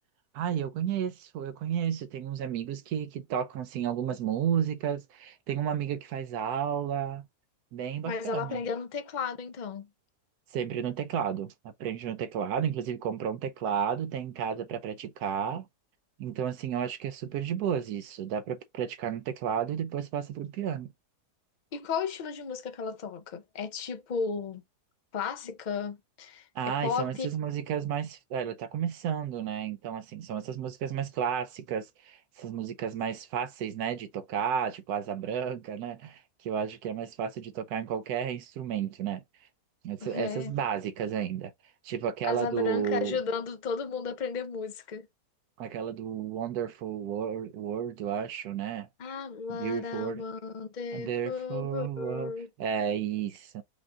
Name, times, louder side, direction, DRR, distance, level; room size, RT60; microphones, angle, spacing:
voice 1, 0.3-7.2 7.7-8.6 10.5-15.7 16.2-20.9 26.6-39.2 39.8-41.5 41.8-43.2 45.6-48.9 49.5-50.2 50.9-52.3 52.6-53.6, right 8 dB, 75° right, 1.1 m, -32 dB
voice 2, 8.0-9.9 21.7-24.6 25.1-27.3 40.0-40.5 42.2-45.1 49.0-52.5, left 5 dB, 60° left, 0.4 m, -34 dB
5.1 x 2.5 x 3.6 m
omnidirectional pair, 1.7 m